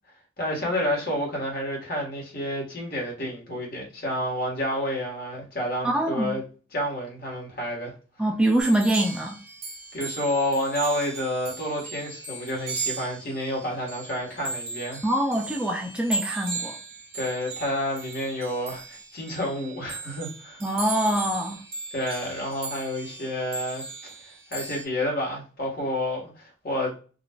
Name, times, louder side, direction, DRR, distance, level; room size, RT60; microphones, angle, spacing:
voice 1, 0.4-6.4 6.7-7.9 9.9-15.1 17.1-20.6 21.9-23.8 24.2-27.0, left 1 dB, 50° left, 1.4 m, -29 dB
voice 2, 5.8-6.3 8.2-9.4 15.0-16.8 20.6-21.6, right 1 dB, 5° right, 0.3 m, -24 dB
sound 1, 8.6-24.8, right 4 dB, 55° right, 1.1 m, -37 dB
3.9 x 2.4 x 2.3 m
head